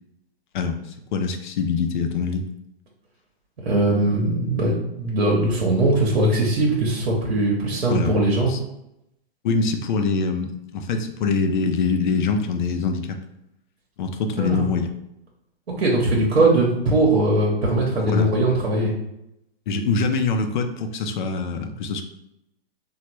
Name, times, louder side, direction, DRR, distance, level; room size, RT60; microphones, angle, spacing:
voice 1, 0.5-2.4 7.9-8.6 9.4-13.2 14.0-14.9 18.1-18.3 19.7-22.0, left 4 dB, 50° left, 6 dB, 0.5 m, -24 dB
voice 2, 3.6-8.5 14.4-14.7 15.8-18.9, right 2 dB, 80° right, -3 dB, 0.9 m, -20 dB
3.3 x 2.3 x 3.0 m, 0.83 s
hypercardioid pair, 125°, 30 cm